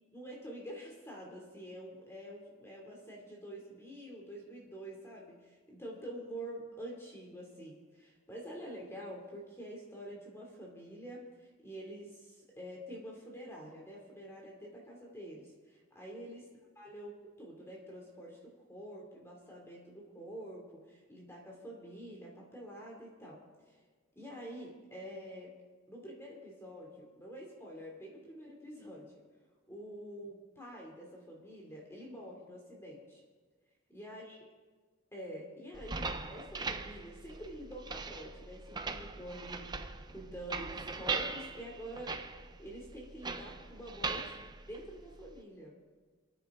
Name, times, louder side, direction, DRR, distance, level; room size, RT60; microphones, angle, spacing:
voice 1, 0.1-16.5 16.8-23.8 24.2-25.6 25.9-29.1 29.7-33.2 33.9-34.4 35.1-39.8 40.1-42.2 42.6-45.8, equal, 10° left, -2 dB, 2.8 m, -47 dB
sound 1, 35.7-45.4, right 4 dB, 20° right, 0.6 m, -40 dB
29.0 x 9.6 x 3.8 m, 1.4 s
head